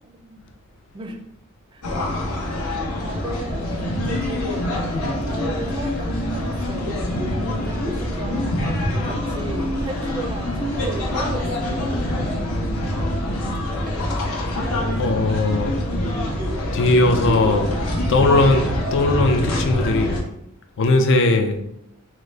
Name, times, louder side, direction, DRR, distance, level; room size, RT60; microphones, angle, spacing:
voice 1, 0.0-0.5 0.9-1.2 1.7-1.8 2.9-4.7 5.2-7.0 7.4-8.6 9.0-11.9, right 2 dB, 20° right, 4 dB, 0.4 m, -34 dB
sound 1, 1.8-20.2, left 1 dB, 85° left, 0.8 m, -25 dB
voice 2, 15.0-15.7 16.7-17.7 18.1-20.2 20.8-21.6, left 2 dB, 60° left, 5 dB, 0.4 m, -18 dB
3.7 x 2.1 x 3.2 m, 0.76 s
head